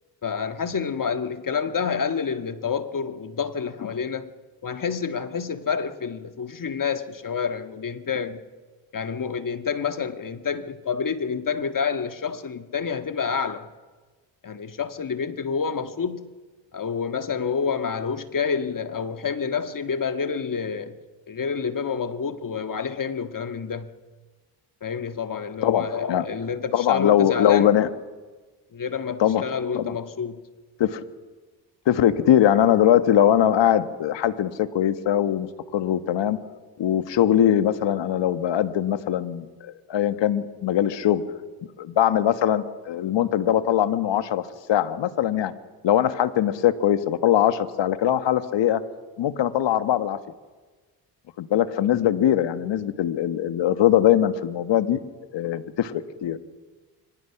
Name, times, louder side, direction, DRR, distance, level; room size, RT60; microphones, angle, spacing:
voice 1, 0.2-4.3 4.6-8.4 8.9-13.7 14.4-16.3 16.7-21.0 21.3-23.9 24.8-27.7 28.7-30.4 46.0-46.1, left 6 dB, 45° left, 1.8 m, -28 dB
voice 2, 25.6-26.2 26.7-27.9 29.2-29.4 29.7-29.9 30.8-31.0 31.9-36.4 36.8-41.2 41.8-45.5 45.8-48.8 49.2-50.2 51.4-55.0 55.3-56.4, left 11 dB, 70° left, 1.6 m, -21 dB
25.5 x 25.5 x 6.0 m
supercardioid pair, 60°, 46 cm